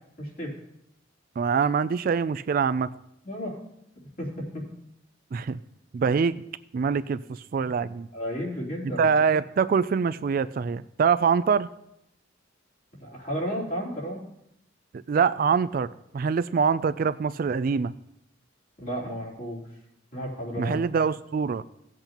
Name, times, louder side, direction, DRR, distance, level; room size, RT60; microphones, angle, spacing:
voice 1, 0.2-0.5 3.2-3.6 4.2-4.6 7.6-7.7 8.1-9.1 13.0-14.3 18.8-19.6 20.1-20.8, equal, 45° left, -4 dB, 3.4 m, -33 dB
voice 2, 1.4-2.9 5.3-5.6 5.9-6.4 6.7-8.1 9.0-11.7 15.1-15.9 16.1-17.9 20.6-21.6, right 6 dB, 45° right, 14 dB, 0.3 m, -24 dB
16.5 x 7.9 x 2.9 m, 0.80 s
head